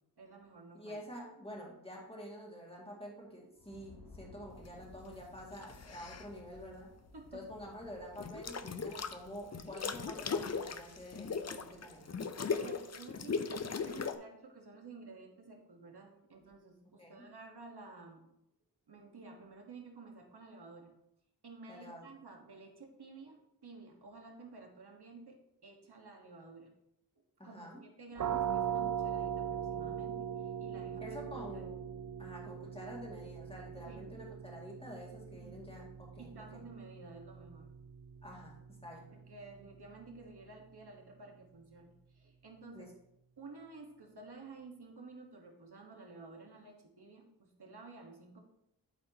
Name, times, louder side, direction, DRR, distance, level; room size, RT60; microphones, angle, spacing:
voice 1, 0.2-1.0 7.1-7.5 12.5-18.3 18.9-20.9 21.4-26.7 27.4-31.6 33.9-34.1 35.4-35.6 36.2-37.7 39.1-42.9 43.4-48.4, right 3 dB, 60° right, 2 dB, 1.5 m, -52 dB
voice 2, 0.7-6.9 7.3-12.1 17.0-17.3 21.7-22.1 27.4-27.8 31.0-31.8 32.2-36.6 38.2-39.1 42.7-42.9, equal, 15° left, -3 dB, 2.1 m, -48 dB
sound 1, 3.6-13.2, left 2 dB, 60° left, 1.3 m, -59 dB
sound 2, 5.6-6.3 8.2-9.2 9.5-14.2, left 5 dB, 40° left, 0.5 m, -38 dB
sound 3, 28.2-39.7, right 9 dB, 45° right, 0.5 m, -40 dB
12.5 x 4.2 x 2.9 m, 0.83 s
wide cardioid pair, 60°, 43 cm